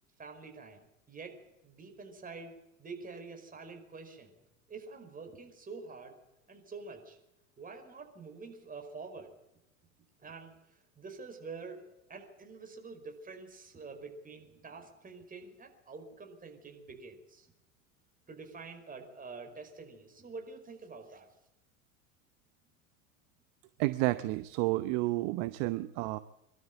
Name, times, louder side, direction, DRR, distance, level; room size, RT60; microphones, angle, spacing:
voice 1, 0.2-1.4 1.6-4.3 4.7-6.1 6.5-7.2 7.6-9.3 10.2-11.8 12.1-17.5 18.3-21.3, right 4 dB, 20° right, 4 dB, 5.1 m, -47 dB
voice 2, 23.8-26.2, right 19 dB, 50° right, 13 dB, 0.9 m, -31 dB
23.5 x 12.5 x 9.2 m, 0.91 s
figure-of-eight pair, 85°, 41 cm